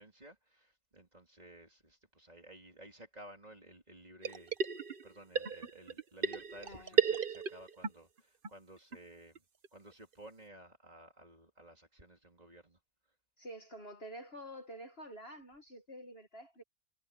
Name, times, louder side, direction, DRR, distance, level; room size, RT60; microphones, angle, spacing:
voice 1, 0.0-4.6 5.0-9.4 9.7-12.8, right 1 dB, 25° right, 3.3 m, -55 dB
sound 1, 4.2-5.1 5.4-7.9 8.2-8.3 8.4-8.5 8.9-9.0 9.4-9.5 9.6-9.7 10.1-10.2, right 6 dB, 40° right, 1.0 m, -33 dB
voice 2, 6.6-7.0 13.4-16.6, equal, 35° left, 2.0 m, -48 dB
omnidirectional pair, 1.8 m